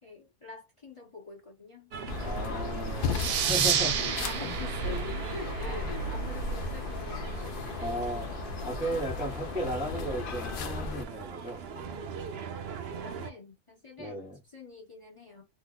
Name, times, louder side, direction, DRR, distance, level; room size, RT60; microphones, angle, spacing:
voice 1, 0.0-1.9 2.2-7.8 13.0-15.4, left 4 dB, 25° left, 1.0 m, -46 dB
sound 1, 1.9-13.3, right 6 dB, 60° right, 0.6 m, -41 dB
sound 2, 2.1-11.0, left 3 dB, 80° left, 0.4 m, -35 dB
voice 2, 2.2-3.1 3.5-4.1 4.4-4.6 5.8-5.9 7.8-12.0 14.0-14.3, equal, 5° right, 0.8 m, -35 dB
sound 3, 3.1-6.3, right 9 dB, 80° right, 1.0 m, -31 dB
2.9 x 2.0 x 3.6 m
omnidirectional pair, 1.5 m